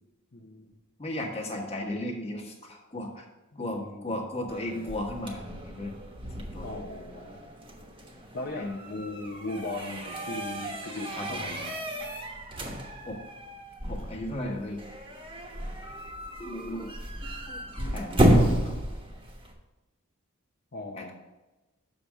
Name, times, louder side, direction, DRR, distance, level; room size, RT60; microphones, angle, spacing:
voice 1, 0.3-0.7 3.5-4.1 6.6-7.4 8.3-11.7 20.7-21.1, left 2 dB, 50° left, -2 dB, 0.8 m, -38 dB
voice 2, 1.0-3.3 3.5-5.9 6.3-6.7 8.5-8.9 11.2-11.6 13.0-13.2 13.8-14.8 16.4-16.9 17.2-18.8 20.9-21.1, left 1 dB, 30° left, -1 dB, 1.4 m, -36 dB
sound 1, 4.5-19.5, equal, 25° right, 1.1 m, -31 dB
6.9 x 5.2 x 6.1 m, 1.1 s
head